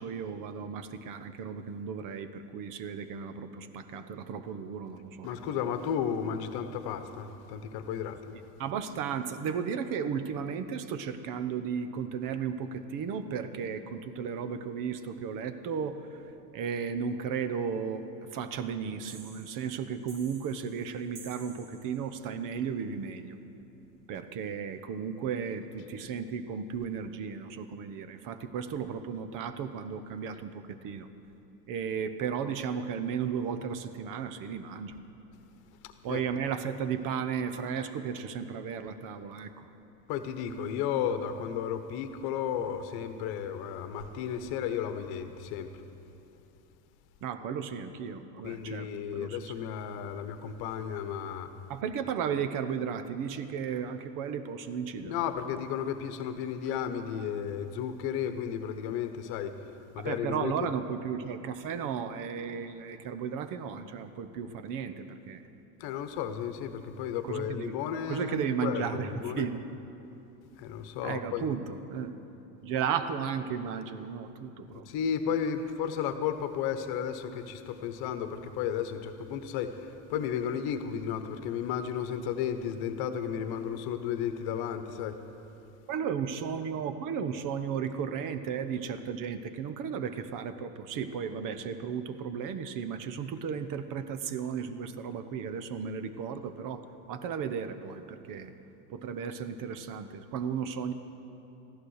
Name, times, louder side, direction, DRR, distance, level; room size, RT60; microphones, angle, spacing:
voice 1, 0.0-5.6 8.6-16.2 16.5-18.1 18.3-23.4 24.1-31.1 31.7-35.0 36.0-39.7 47.2-49.4 51.7-55.2 60.0-65.4 67.2-67.7 68.1-69.6 71.0-72.1 72.6-74.9 85.9-98.5 98.9-100.9, right 7 dB, 40° right, 11 dB, 0.9 m, -34 dB
voice 2, 5.2-8.3 35.8-36.2 40.1-45.8 48.4-51.5 55.0-59.6 59.9-60.5 65.8-69.5 70.6-71.5 74.6-85.2, left 8 dB, 50° left, 9 dB, 1.2 m, -33 dB
sound 1, 19.1-22.3, right 5 dB, 90° right, 2.1 m, -53 dB
15.5 x 11.5 x 6.5 m, 2.9 s
supercardioid pair, 120°, 49 cm